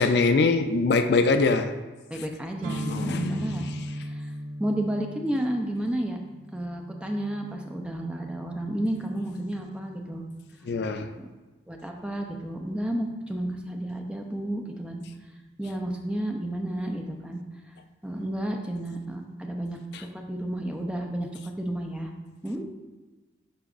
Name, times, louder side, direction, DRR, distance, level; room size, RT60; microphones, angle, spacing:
voice 1, 0.0-1.7 2.9-3.5 10.7-11.1, left 3 dB, 65° left, 8 dB, 0.4 m, -23 dB
voice 2, 2.1-3.7 4.0-4.3 4.6-6.2 6.5-10.2 11.2-11.3 11.7-15.0 15.6-17.4 18.0-22.1 22.4-22.6, right 1 dB, 5° right, 2 dB, 0.5 m, -31 dB
sound 1, 2.6-10.4, equal, 85° right, 0.5 m, -38 dB
11.0 x 3.9 x 2.5 m, 1.2 s
head